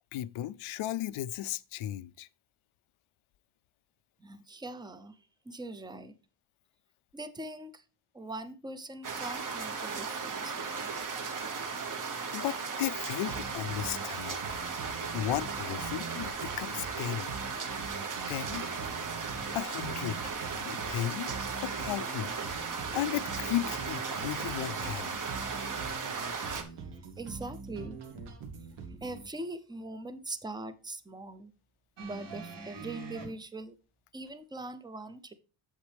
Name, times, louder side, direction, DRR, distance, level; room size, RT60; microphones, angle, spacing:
voice 1, 0.1-2.3 12.3-14.5 15.1-17.3 18.3-18.7 19.5-20.3 20.6-21.3 21.6-22.3 22.9-25.1, left 13 dB, 75° left, 0.5 m, -35 dB
voice 2, 4.2-5.2 5.5-6.1 7.1-7.8 8.1-10.9 27.2-28.0 28.9-31.5 32.0-33.8 34.1-35.3, right 2 dB, 10° right, 0.5 m, -42 dB
sound 1, 9.0-26.6, right 5 dB, 40° right, 1.0 m, -36 dB
sound 2, 13.3-29.3, right 5 dB, 80° right, 1.5 m, -44 dB
sound 3, 32.0-33.3 34.3-34.4, right 4 dB, 55° right, 2.7 m, -43 dB
8.2 x 7.2 x 3.3 m
wide cardioid pair, 140°, 49 cm